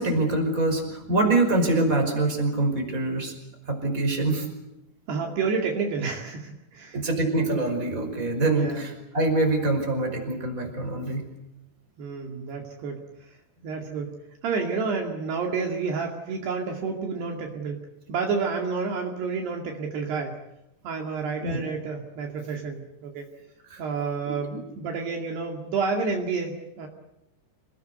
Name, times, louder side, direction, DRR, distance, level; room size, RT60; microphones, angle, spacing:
voice 1, 0.0-3.3 3.7-4.5 6.9-11.3 21.4-21.6 23.7-23.8, right 2 dB, 15° right, 3 dB, 5.3 m, -24 dB
voice 2, 5.1-7.0 8.5-8.9 12.0-13.0 13.6-14.1 14.4-17.8 18.1-20.4 20.8-23.3 23.8-26.9, right 5 dB, 65° right, 2 dB, 4.2 m, -29 dB
27.5 x 19.0 x 8.1 m, 0.92 s
omnidirectional pair, 5.4 m